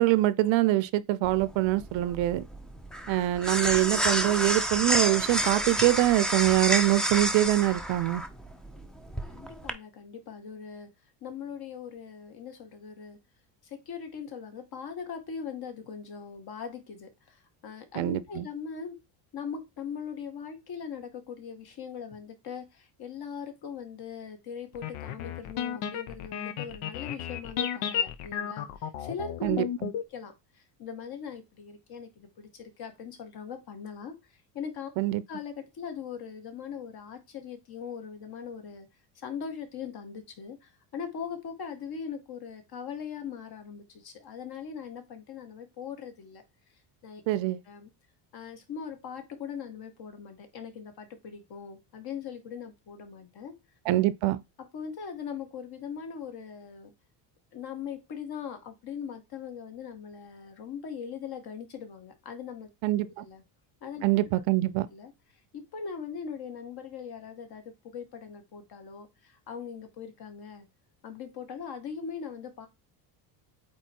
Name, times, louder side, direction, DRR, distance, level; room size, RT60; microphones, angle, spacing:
voice 1, 0.0-2.4 3.1-8.2 18.0-18.5 29.4-29.7 35.0-35.2 47.3-47.6 53.9-54.4 62.8-63.2 64.0-64.9, right 16 dB, 65° right, 0.7 m, -24 dB
sound 1, 1.2-9.7, right 1 dB, ahead, 0.6 m, -30 dB
voice 2, 9.3-10.9 11.2-13.2 13.6-19.0 19.3-29.6 30.1-34.9 35.3-38.9 39.2-46.4 47.0-47.2 47.7-47.9 48.3-53.5 54.7-56.9 57.5-62.7 63.0-63.4 63.8-64.1 64.9-65.1 65.5-70.7 71.0-72.7, left 6 dB, 45° left, 1.8 m, -40 dB
sound 2, 24.7-30.0, left 9 dB, 75° left, 1.1 m, -33 dB
8.5 x 3.2 x 4.6 m
cardioid pair, 140°, 50 cm